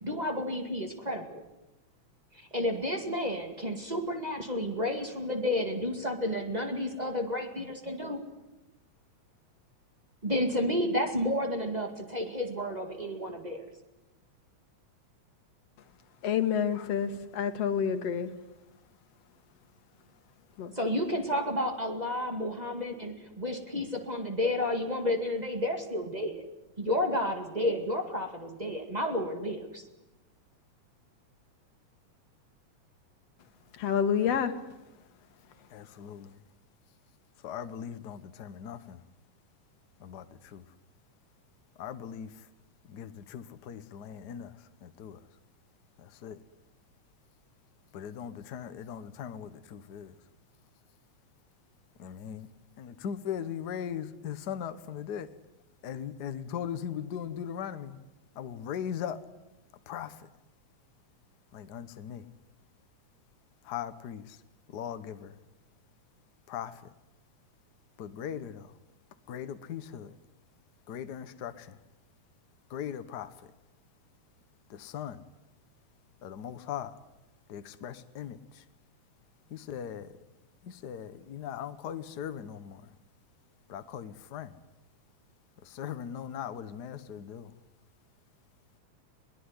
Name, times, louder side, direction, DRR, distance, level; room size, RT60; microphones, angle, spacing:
voice 1, 0.0-1.4 2.5-8.2 10.2-13.7 20.8-26.4 26.8-29.8, left 1 dB, 15° right, 1.8 m, -31 dB
voice 2, 16.2-18.3 20.6-20.7 33.7-34.5, left 8 dB, 60° left, 2.5 m, -28 dB
voice 3, 35.7-36.3 37.4-39.0 40.0-40.6 41.8-42.3 42.9-44.5 44.8-45.2 46.0-46.4 47.9-50.1 52.0-52.5 52.8-55.3 55.8-58.0 58.4-59.2 59.9-60.2 61.5-62.2 63.6-64.4 64.7-65.3 66.5-66.8 68.0-68.7 69.3-70.1 70.9-71.8 72.7-73.3 74.7-75.2 76.2-76.9 77.5-78.6 79.5-80.1 80.6-82.8 83.7-84.5 85.6-87.5, left 9 dB, 85° left, 0.9 m, -39 dB
22.0 x 19.5 x 9.8 m
omnidirectional pair, 3.4 m